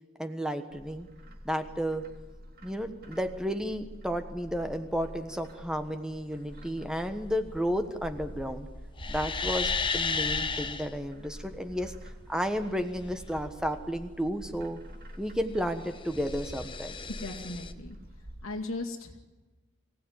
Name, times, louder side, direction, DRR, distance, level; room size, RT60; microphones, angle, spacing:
voice 1, 0.2-1.1 1.4-2.0 2.6-8.7 9.1-11.9 12.3-14.8 15.2-17.0, equal, 5° right, 8 dB, 1.2 m, -32 dB
Bird, 0.7-18.4, equal, 45° right, 2.5 m, -45 dB
sound 1, 9.0-10.9 15.7-17.7, left 5 dB, 25° left, 1.0 m, -33 dB
voice 2, 17.2-18.0 18.4-19.2, left 2 dB, 90° left, 0 dB, 2.4 m, -37 dB
24.0 x 16.5 x 9.6 m, 1.2 s
head